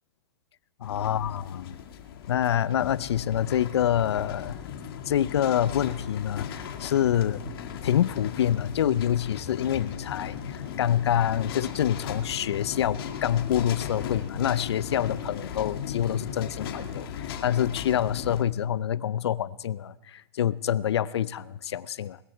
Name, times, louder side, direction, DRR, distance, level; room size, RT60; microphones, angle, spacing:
voice 1, 0.8-1.7 2.3-4.6 5.1-7.4 7.8-22.2, left 10 dB, 85° left, 0.5 m, -26 dB
sound 1, 0.8-18.4, left 8 dB, 60° left, 2.0 m, -37 dB
20.0 x 14.0 x 4.6 m
hypercardioid pair, 145°, 14 cm